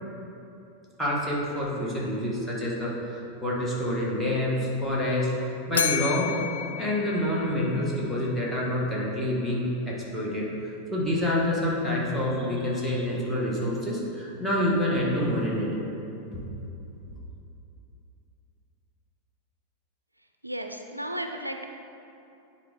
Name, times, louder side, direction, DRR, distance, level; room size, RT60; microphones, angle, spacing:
voice 1, 1.0-5.3 5.7-6.3 6.8-10.5 10.9-15.7 16.3-16.4, left 1 dB, 5° left, -6 dB, 1.6 m, -27 dB
Bell, 5.7-8.0, left 9 dB, 70° left, 0.4 m, -31 dB
voice 2, 20.4-21.7, right 1 dB, 85° right, 5 dB, 0.3 m, -34 dB
9.7 x 4.2 x 3.7 m, 2.8 s
figure-of-eight pair, 90°, 0 cm